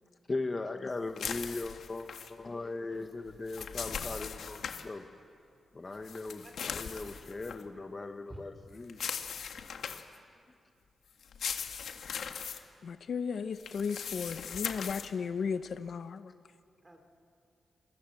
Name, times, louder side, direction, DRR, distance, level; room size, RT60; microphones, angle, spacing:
voice 1, 0.3-5.1 5.7-9.0, left 3 dB, 25° left, 1.1 m, -39 dB
sound 1, 1.2-2.3 3.3-4.8 6.0-7.6 8.9-10.2 11.2-12.6 13.6-15.1, left 7 dB, 75° left, 1.6 m, -39 dB
voice 2, 6.4-7.1 8.3-8.4 16.8-17.0, right 1 dB, 20° right, 3.6 m, -52 dB
voice 3, 12.8-16.3, left 6 dB, 60° left, 0.8 m, -35 dB
25.5 x 23.0 x 7.9 m
wide cardioid pair, 135°, 0 cm